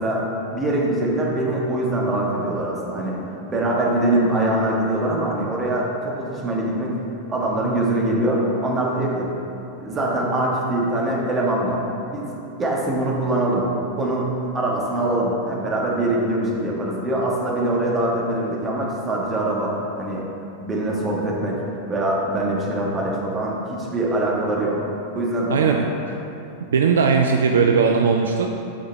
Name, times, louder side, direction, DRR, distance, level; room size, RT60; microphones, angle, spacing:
voice 1, 0.0-3.2 3.5-7.0 7.3-9.3 9.8-11.8 12.1-14.3 14.5-20.3 20.6-21.6 21.9-24.8 25.1-25.9, right 1 dB, 20° right, -3 dB, 1.4 m, -23 dB
voice 2, 25.5-25.9 26.7-28.5, right 5 dB, 65° right, 3 dB, 0.4 m, -18 dB
8.7 x 5.6 x 3.4 m, 2.9 s
figure-of-eight pair, 90°, 0 cm